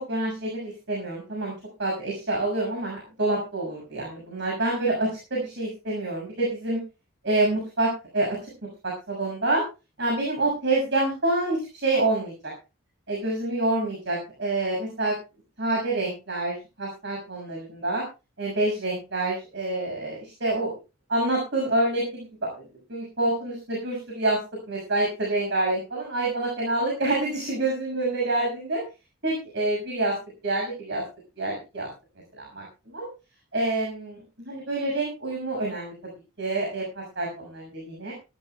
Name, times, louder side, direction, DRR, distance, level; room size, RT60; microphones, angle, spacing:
voice 1, 0.1-1.5 1.8-6.8 7.2-8.5 8.8-9.6 10.0-12.5 13.1-15.2 15.6-18.0 18.4-20.7 21.1-22.6 22.9-24.4 24.7-28.8 29.2-30.2 30.4-31.0 31.4-31.9 32.3-33.1 33.5-35.9 36.4-38.1, right 2 dB, 55° right, -1 dB, 6.4 m, -27 dB
21.5 x 14.0 x 2.3 m, 0.30 s
head